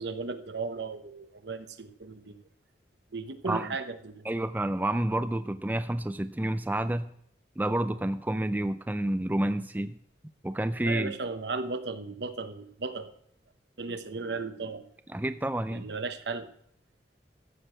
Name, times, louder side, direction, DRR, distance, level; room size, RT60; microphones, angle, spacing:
voice 1, 0.0-2.4 3.1-4.3 10.8-13.1 13.8-14.9 15.7-16.5, right 4 dB, 80° right, 10 dB, 0.8 m, -35 dB
voice 2, 4.3-7.1 7.6-10.0 10.4-11.1 15.1-15.9, right 1 dB, 10° right, 10 dB, 0.3 m, -29 dB
14.5 x 4.9 x 7.5 m, 0.69 s
head